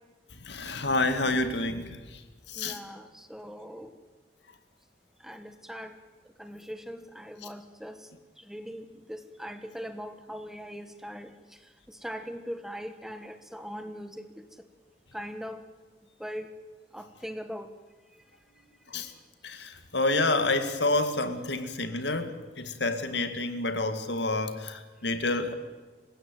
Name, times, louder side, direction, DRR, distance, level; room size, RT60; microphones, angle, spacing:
voice 1, 0.4-2.2 2.5-2.8 18.9-19.1 19.4-25.5, left 2 dB, 70° left, 9 dB, 2.2 m, -28 dB
voice 2, 2.6-3.9 5.2-5.9 6.4-8.0 8.5-11.3 12.0-14.2 15.1-15.6 16.2-16.5 16.9-17.7, equal, ahead, 9 dB, 1.3 m, -40 dB
26.5 x 16.0 x 9.4 m, 1.3 s
head